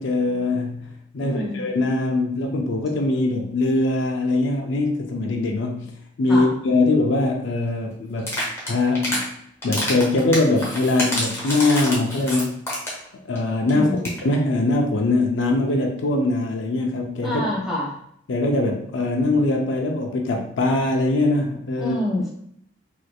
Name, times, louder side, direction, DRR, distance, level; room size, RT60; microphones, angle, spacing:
voice 1, 0.0-5.9 6.2-8.4 8.7-9.3 9.6-12.6 13.3-17.4 18.3-22.0, left 2 dB, 80° left, 2 dB, 0.5 m, -22 dB
voice 2, 1.2-1.7 6.3-6.5 13.7-14.1 17.2-17.9 21.8-22.3, left 1 dB, ahead, -7 dB, 1.3 m, -26 dB
sound 1, 8.2-9.2 9.6-13.1 13.4-13.5 13.7-13.8 14.0-14.2, left 1 dB, 15° left, 0.8 m, -27 dB
3.2 x 3.1 x 2.3 m, 0.69 s
head